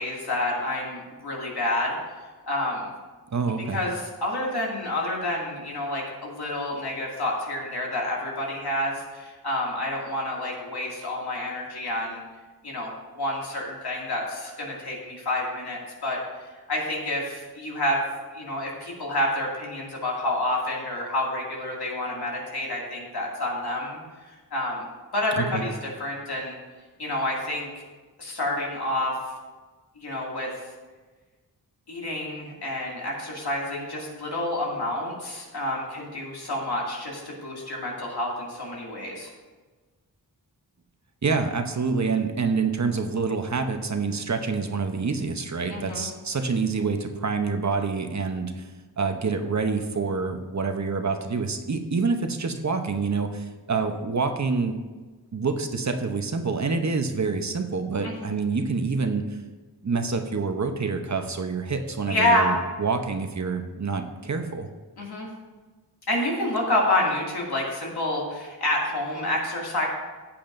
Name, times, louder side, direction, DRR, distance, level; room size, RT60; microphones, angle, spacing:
voice 1, 0.0-2.0 2.4-2.9 3.7-12.2 12.6-16.2 16.7-18.0 18.3-24.0 24.3-24.9 25.1-26.6 27.0-27.8 28.2-29.1 30.0-30.5 31.9-39.3 45.7-46.1 58.0-58.3 62.1-62.5 65.0-65.3 66.1-69.9, left 1 dB, 90° left, -3 dB, 2.4 m, -28 dB
voice 2, 3.3-3.8 25.4-25.7 41.2-48.7 49.0-54.7 55.3-59.2 59.8-64.7, right 4 dB, 45° right, 6 dB, 0.9 m, -27 dB
14.5 x 8.5 x 2.6 m, 1.3 s
wide cardioid pair, 90°, 38 cm